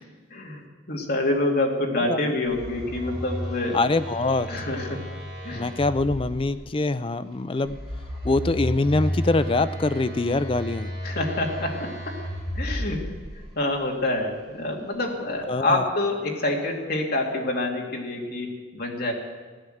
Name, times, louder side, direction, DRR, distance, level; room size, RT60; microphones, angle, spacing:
voice 1, 0.3-3.8 4.5-5.0 5.4-5.7 11.0-12.2 12.5-13.1 13.6-19.1, left 2 dB, 50° left, 0 dB, 2.4 m, -27 dB
Telephone, 2.5-6.5 7.6-13.4, equal, 25° right, 6.8 m, -33 dB
voice 2, 3.7-4.5 5.5-7.8 8.2-10.9 15.5-15.9, left 2 dB, 25° left, 13 dB, 0.4 m, -24 dB
15.5 x 10.5 x 7.9 m, 1.4 s
head